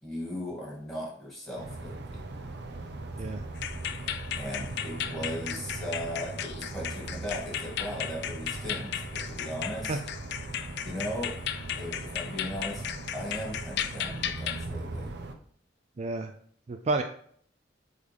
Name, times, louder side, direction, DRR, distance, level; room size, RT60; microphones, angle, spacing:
voice 1, 0.0-2.2 4.4-10.0 10.8-11.4 11.7-15.1, equal, ahead, -5 dB, 2.5 m, -37 dB
sound 1, 1.6-15.3, right 2 dB, 60° right, 0.8 m, -39 dB
sound 2, 3.6-14.7, left 10 dB, 60° left, 0.4 m, -36 dB
voice 2, 16.0-16.3 16.7-17.0, right 2 dB, 35° right, 6 dB, 0.4 m, -30 dB
8.2 x 3.6 x 3.5 m, 0.62 s
head